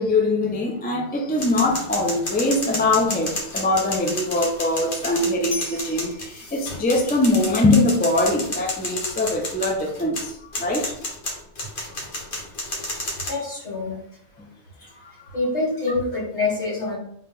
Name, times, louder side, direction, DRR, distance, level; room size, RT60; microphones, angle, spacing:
voice 1, 0.0-10.9 13.9-14.0 15.3-15.4, left 2 dB, 15° left, 0.4 m, -22 dB
sound 1, 1.4-13.3, left 1 dB, 50° left, 1.2 m, -31 dB
voice 2, 13.3-14.0 15.3-17.0, left 3 dB, 70° left, 2.2 m, -25 dB
3.5 x 2.8 x 3.6 m
omnidirectional pair, 1.2 m